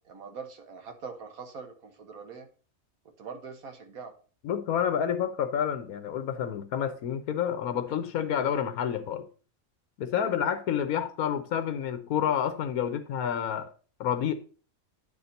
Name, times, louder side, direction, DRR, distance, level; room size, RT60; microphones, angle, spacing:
voice 1, 0.1-2.5 3.2-4.1 10.2-10.4, right 5 dB, 75° right, 1.7 m, -43 dB
voice 2, 4.4-9.2 10.0-13.7 14.0-14.3, left 9 dB, 85° left, 1.2 m, -29 dB
9.3 x 4.3 x 5.1 m
omnidirectional pair, 1.5 m